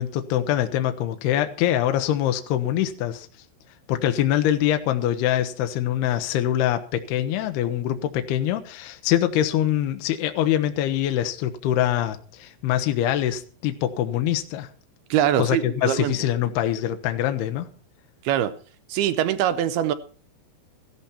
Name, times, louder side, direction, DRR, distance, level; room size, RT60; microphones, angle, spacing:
voice 1, 0.0-3.3 3.9-14.7 15.4-17.7, left 11 dB, 75° left, 2.9 m, -24 dB
voice 2, 15.1-16.2 18.2-18.5 18.9-19.9, right 11 dB, 75° right, 2.5 m, -23 dB
15.0 x 14.0 x 4.3 m
omnidirectional pair, 4.8 m